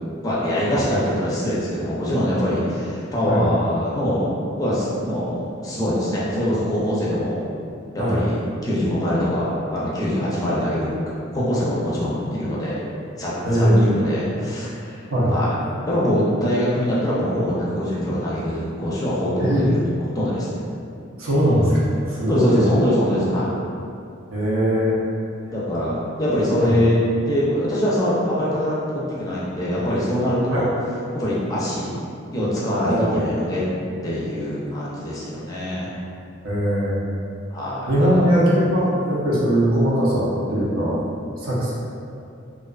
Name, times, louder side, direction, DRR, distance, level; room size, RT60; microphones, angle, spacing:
voice 1, 0.2-4.3 4.6-7.4 7.9-8.4 8.6-10.9 11.3-12.8 13.2-15.0 15.3-15.5 15.9-19.8 20.1-20.6 22.3-23.5 25.5-30.7 31.1-32.0 32.3-33.6 34.0-35.9 37.5-38.3, equal, 15° left, -8 dB, 0.4 m, -23 dB
voice 2, 13.4-13.9 15.1-15.3 19.4-19.7 21.2-22.6 24.3-25.0 26.6-26.8 30.5-30.6 32.8-33.2 36.4-37.0 37.9-41.0 41.4-41.7, equal, 90° right, -7 dB, 0.7 m, -20 dB
2.4 x 2.3 x 2.3 m, 2.5 s
head